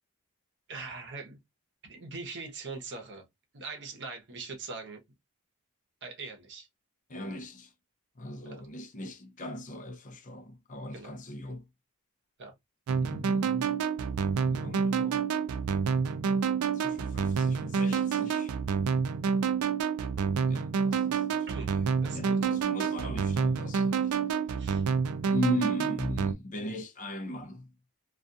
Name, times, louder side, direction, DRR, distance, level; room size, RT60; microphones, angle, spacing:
voice 1, 0.7-1.4 1.8-3.2 3.5-5.0 6.0-6.7 8.4-8.6 10.9-11.1 12.4-12.5 21.5-21.7 22.0-22.4 24.6-24.8, right 4 dB, 55° right, 0.8 m, -41 dB
voice 2, 7.1-7.7 8.2-11.6 13.0-13.8 14.5-15.3 16.7-18.5 20.5-24.1 25.2-27.7, equal, 35° left, 0.5 m, -38 dB
sound 1, 12.9-26.3, right 6 dB, 70° right, 0.4 m, -28 dB
2.3 x 2.3 x 2.6 m
head